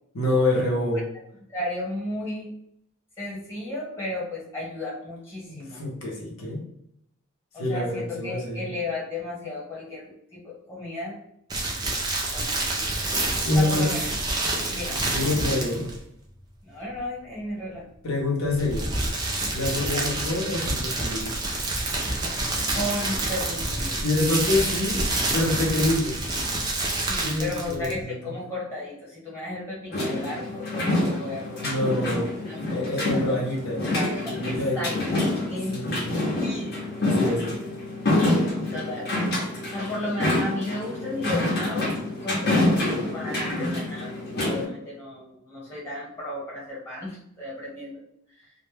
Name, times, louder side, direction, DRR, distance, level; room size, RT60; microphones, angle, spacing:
voice 1, 0.1-1.1 5.5-6.6 7.6-8.7 13.4-13.9 15.0-15.9 18.0-18.9 19.5-21.4 24.0-25.1 25.3-26.2 27.2-28.2 31.6-32.3 32.7-33.8 34.3-35.0 35.7-36.1 37.0-37.6, left 2 dB, 80° left, -2 dB, 0.8 m, -26 dB
voice 2, 1.5-2.5 3.2-5.8 7.5-10.4 10.7-11.1 12.3-12.6 13.5-14.1 14.7-15.0 16.6-17.8 19.8-20.1 22.7-24.0 27.0-31.7 32.4-33.5 34.0-34.9 35.4-35.8 36.4-36.7 38.7-39.1 39.7-41.9 42.2-48.0, left 1 dB, 10° left, -6 dB, 1.0 m, -34 dB
sound 1, 11.5-16.0 18.4-28.0, right 2 dB, 20° right, 0.4 m, -28 dB
sound 2, 29.9-44.6, left 1 dB, 45° left, 0.7 m, -27 dB
2.1 x 2.1 x 3.2 m, 0.74 s
head